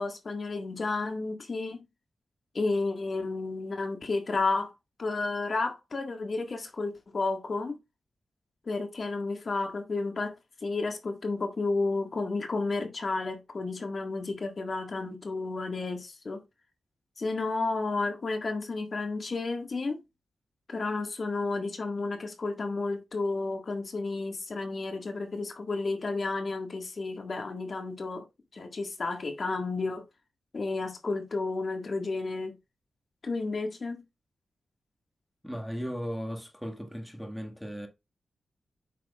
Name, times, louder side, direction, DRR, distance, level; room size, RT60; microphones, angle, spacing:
voice 1, 0.0-1.8 2.5-4.7 5.0-7.8 8.6-10.4 10.6-16.4 17.2-20.0 20.7-28.2 28.5-30.0 30.5-32.5 33.2-34.0, left 3 dB, 50° left, 1.7 m, -32 dB
voice 2, 35.4-37.9, equal, ahead, 1.7 m, -36 dB
8.3 x 6.2 x 2.4 m
wide cardioid pair, 95°, 0 cm